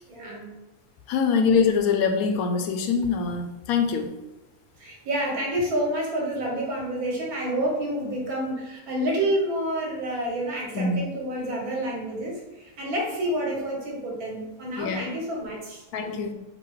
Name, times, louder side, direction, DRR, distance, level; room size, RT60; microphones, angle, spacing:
voice 1, 0.1-0.5 4.8-15.8, right 1 dB, 85° right, -2 dB, 1.7 m, -29 dB
voice 2, 1.1-4.1 10.7-11.0 14.8-15.1 15.9-16.3, left 5 dB, 85° left, 6 dB, 1.1 m, -24 dB
3.9 x 2.7 x 4.7 m, 1.0 s
omnidirectional pair, 1.5 m